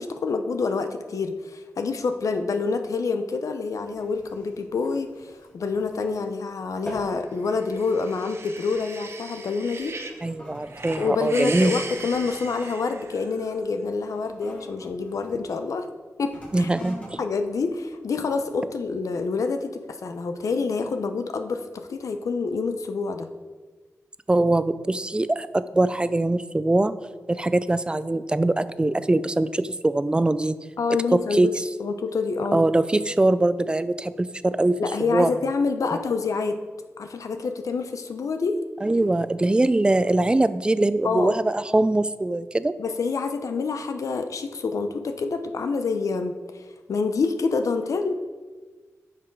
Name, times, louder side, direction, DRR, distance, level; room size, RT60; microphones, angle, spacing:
voice 1, 0.0-10.0 11.0-15.9 16.2-16.7 17.2-23.3 30.8-31.5 31.8-32.6 34.8-36.6 37.0-38.6 41.0-41.3 42.8-46.6 46.9-48.3, left 4 dB, 80° left, 7 dB, 0.7 m, -27 dB
sound 1, 3.8-6.4 6.7-7.2 7.6-7.9 8.6-8.8 9.6-15.4 16.2-18.5 19.1-19.2, equal, 25° left, 3.3 m, -45 dB
sound 2, 7.5-10.2 10.6-13.5, right 3 dB, 50° right, 0.8 m, -37 dB
voice 2, 10.2-11.8 16.5-17.0 24.3-26.9 27.3-30.6 31.1-31.6 32.5-34.8 35.1-35.3 35.9-36.0 38.8-42.7, right 2 dB, 15° right, 14 dB, 0.4 m, -22 dB
11.0 x 5.9 x 4.7 m, 1.4 s
wide cardioid pair, 105°, 5 cm